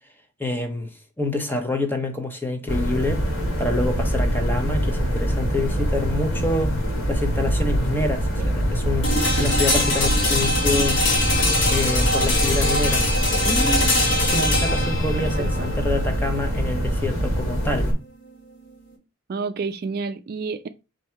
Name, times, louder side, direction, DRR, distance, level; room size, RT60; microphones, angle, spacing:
voice 1, 0.4-3.2 3.6-6.8 7.1-11.0 11.7-13.1 13.4-17.9, left 2 dB, 10° left, 0.7 m, -27 dB
sound 1, 2.7-17.9, equal, 80° left, 1.7 m, -24 dB
sound 2, 9.0-18.9, left 2 dB, 60° left, 1.3 m, -24 dB
voice 2, 15.2-15.7 19.3-20.7, right 4 dB, 45° right, 0.3 m, -30 dB
4.5 x 2.7 x 4.3 m
head